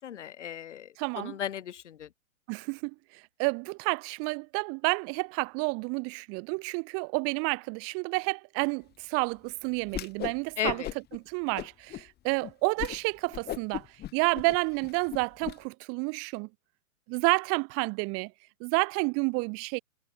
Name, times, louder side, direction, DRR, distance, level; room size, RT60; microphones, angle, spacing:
voice 1, 0.0-0.9 1.2-2.1 10.6-10.9, left 10 dB, 60° left, 4.4 m, -35 dB
voice 2, 1.0-1.4 2.5-10.8 11.1-13.9 14.1-16.5 17.1-18.3 18.6-19.8, right 33 dB, 35° right, 6.0 m, -30 dB
Whoosh swoosh swish, 9.9-10.4 10.6-11.2 11.5-12.0 12.4-12.5 12.8-13.0 13.3-15.5, left 13 dB, 25° left, 6.5 m, -36 dB
figure-of-eight pair, 120°, 40 cm